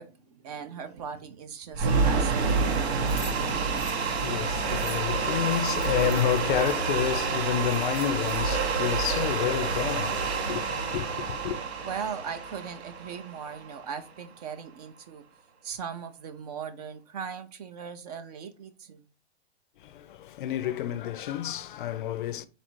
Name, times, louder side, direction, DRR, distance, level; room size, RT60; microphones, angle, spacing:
voice 1, 0.0-2.8 11.8-15.2 15.6-19.1, right 7 dB, 40° right, 0.5 m, -39 dB
sound 1, 1.7-13.9, right 4 dB, 85° right, 0.9 m, -28 dB
sound 2, 3.1-6.8 7.3-7.4 7.6-8.6, equal, 5° right, 1.0 m, -47 dB
voice 2, 3.4-11.6 19.8-22.5, left 11 dB, 50° left, 0.5 m, -30 dB
4.1 x 2.5 x 4.5 m
hypercardioid pair, 150°, 32 cm